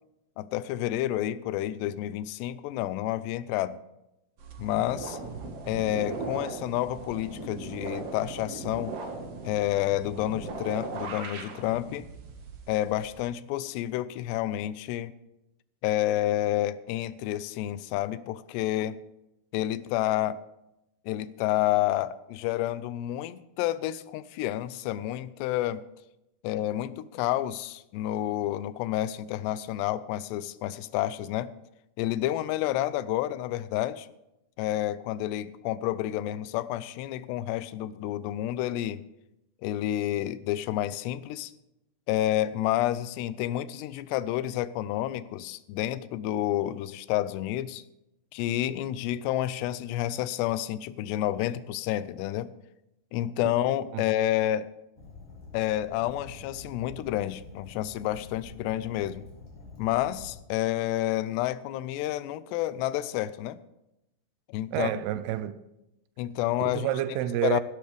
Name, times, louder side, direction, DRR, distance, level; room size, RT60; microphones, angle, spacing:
voice 1, 0.4-3.8 4.6-5.2 5.7-9.0 9.5-12.1 12.7-15.1 15.8-19.0 19.5-20.4 21.1-25.8 26.4-31.5 32.0-34.1 34.6-39.0 39.6-41.5 42.1-47.8 48.3-52.5 53.1-54.7 55.5-59.2 59.8-63.6 64.5-64.9 66.2-66.9 67.4-67.6, left 13 dB, 90° left, 2.8 m, -29 dB
sound 1, 4.4-13.2, right 4 dB, 50° right, 1.9 m, -39 dB
Fire, 55.0-60.4, left 3 dB, 60° left, 5.2 m, -47 dB
voice 2, 64.7-65.6 66.6-67.6, right 12 dB, 80° right, 2.6 m, -29 dB
16.5 x 12.0 x 3.4 m
omnidirectional pair, 4.8 m